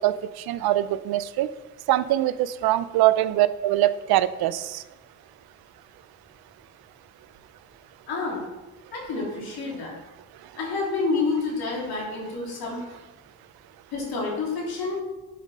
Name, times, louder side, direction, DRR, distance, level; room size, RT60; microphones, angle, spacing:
voice 1, 0.0-1.5 1.9-4.8, right 14 dB, 80° right, 15 dB, 0.5 m, -23 dB
voice 2, 8.1-8.4 8.9-9.9 10.5-12.8 13.9-15.0, left 3 dB, 75° left, -3 dB, 3.1 m, -28 dB
11.0 x 5.3 x 4.1 m, 1.1 s
cardioid pair, 95°, 37 cm